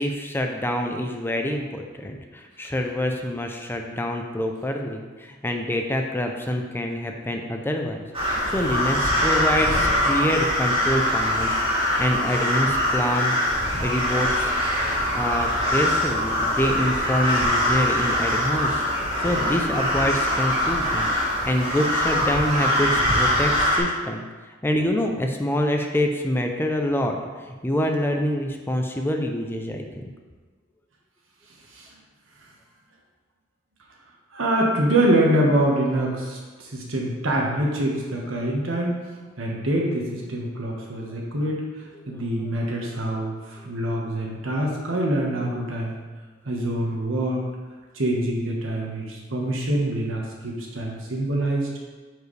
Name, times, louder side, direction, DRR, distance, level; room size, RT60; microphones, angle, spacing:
voice 1, 0.0-8.0 8.5-11.5 12.0-13.3 13.8-14.5 15.1-18.8 19.2-21.1 21.5-24.2 24.6-27.2 27.5-29.8 40.8-40.9 42.0-42.2, left 1 dB, 10° left, 3 dB, 0.5 m, -26 dB
sound 1, 8.1-23.8, left 1 dB, 30° right, 1.9 m, -23 dB
voice 2, 34.3-39.0 39.4-41.6 42.1-45.9 46.4-47.4 47.9-51.7, right 1 dB, 80° right, -2 dB, 1.4 m, -25 dB
9.1 x 4.8 x 3.3 m, 1.4 s
head